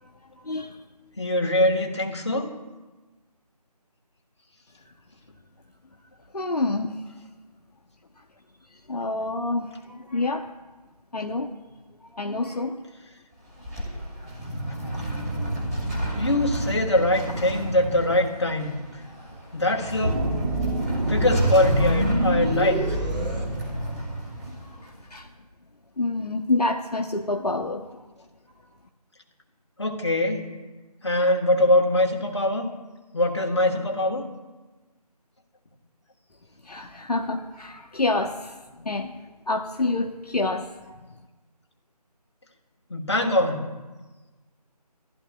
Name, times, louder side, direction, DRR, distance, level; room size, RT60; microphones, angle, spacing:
voice 1, 0.0-0.8 6.3-7.0 8.7-10.5 11.1-11.5 12.1-12.8 21.8-21.9 24.4-25.3 26.0-28.1 36.6-41.1, left 2 dB, 70° left, 3 dB, 0.9 m, -28 dB
voice 2, 1.2-2.5 16.2-18.8 19.5-20.2 21.1-23.0 29.8-30.5 31.0-32.7 33.1-34.2 42.9-43.7, left 1 dB, 45° left, 1 dB, 1.4 m, -23 dB
sound 1, 13.3-25.2, right 1 dB, ahead, 1.1 m, -31 dB
sound 2, 20.0-24.3, right 1 dB, 85° right, 1.6 m, -25 dB
15.0 x 10.5 x 2.3 m, 1.2 s
figure-of-eight pair, 165°, 21 cm